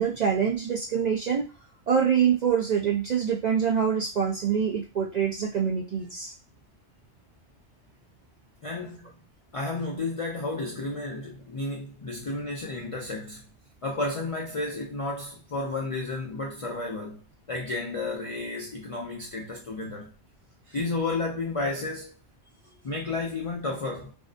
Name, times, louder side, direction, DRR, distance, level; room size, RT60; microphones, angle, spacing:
voice 1, 0.0-1.5 1.9-6.3, right 7 dB, 60° right, 0.4 m, -25 dB
voice 2, 8.6-9.2 9.5-13.4 13.8-20.1 20.7-22.2 22.8-24.1, left 2 dB, 60° left, 0.3 m, -32 dB
2.6 x 2.1 x 2.5 m
omnidirectional pair, 1.2 m